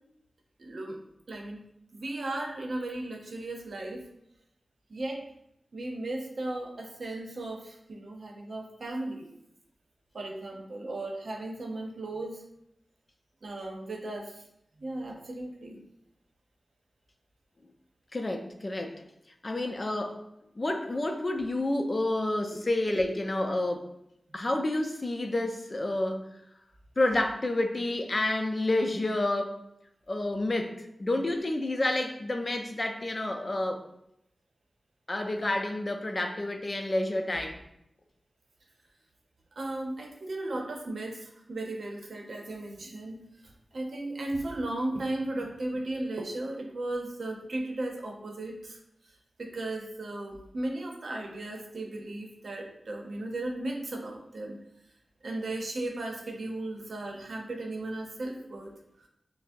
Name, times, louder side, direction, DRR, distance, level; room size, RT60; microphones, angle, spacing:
voice 1, 0.6-1.0 1.3-1.7 1.9-4.0 4.9-5.2 5.7-9.3 10.1-12.4 13.4-14.4 14.8-15.8 24.3-24.4 39.6-48.8 49.4-54.6 55.2-58.7 59.0-59.1, right 2 dB, 75° right, 1 dB, 0.7 m, -36 dB
voice 2, 18.1-19.0 19.4-20.2 20.6-23.9 24.3-26.3 27.0-29.6 30.1-33.8 35.1-37.6, left 2 dB, 45° left, 5 dB, 0.5 m, -29 dB
5.5 x 2.0 x 2.6 m, 0.79 s
cardioid pair, 45°, 0 cm